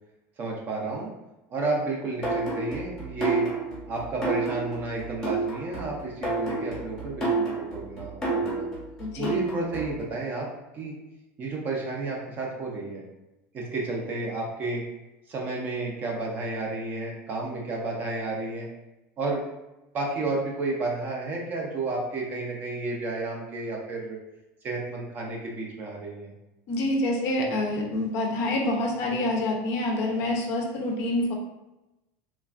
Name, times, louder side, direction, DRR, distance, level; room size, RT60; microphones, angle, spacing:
voice 1, 0.4-1.1 1.5-3.5 3.9-8.7 9.2-10.5 10.7-10.9 11.4-13.0 13.5-14.8 15.3-18.7 19.2-19.4 19.9-24.2 24.6-26.3, right 2 dB, 25° right, -1 dB, 0.5 m, -31 dB
sound 1, 2.2-10.0, right 3 dB, 10° left, 0.8 m, -30 dB
voice 2, 9.0-9.4 26.7-31.3, left 1 dB, 40° left, 0 dB, 0.5 m, -27 dB
3.3 x 2.2 x 2.3 m, 0.96 s
cardioid pair, 175°, 7 cm